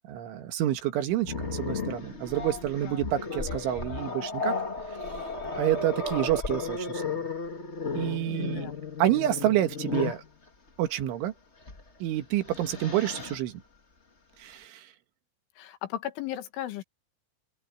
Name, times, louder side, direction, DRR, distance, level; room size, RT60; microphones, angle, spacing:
voice 1, 0.1-4.5 5.6-7.1 8.0-8.7 9.0-10.2 10.8-11.3 12.0-13.6 14.4-14.9, right 13 dB, 85° right, 4.1 m, -28 dB
Growling, 1.2-10.3 11.6-11.8 12.2-13.4, left 4 dB, 45° left, 0.8 m, -34 dB
Telephone, 2.3-4.2 5.0-6.9 8.3-8.4 10.0-10.2, left 8 dB, 75° left, 9.0 m, -45 dB
voice 2, 8.3-8.7 15.6-16.8, left 13 dB, 90° left, 4.1 m, -36 dB
open air
omnidirectional pair, 5.3 m